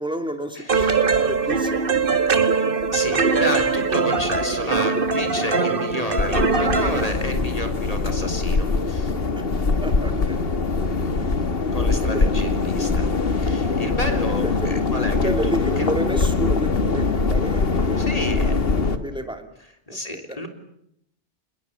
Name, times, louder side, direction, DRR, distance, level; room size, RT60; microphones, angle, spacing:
voice 1, 0.0-1.8 9.4-9.5 9.8-10.4 11.1-11.2 12.0-12.3 14.0-14.1 14.4-14.7 15.1-19.5 19.9-20.4, equal, 5° right, 6 dB, 2.7 m, -31 dB
voice 2, 0.6-1.1 1.4-1.7 2.9-9.1 11.7-13.1 13.4-15.9 17.7-18.6 19.9-20.5, left 1 dB, 35° left, 5 dB, 3.7 m, -31 dB
sound 1, 0.7-7.1, right 4 dB, 50° right, 1.8 m, -21 dB
sound 2, 6.2-19.0, left 4 dB, 55° left, 1.8 m, -22 dB
27.0 x 21.0 x 8.4 m, 0.74 s
omnidirectional pair, 1.2 m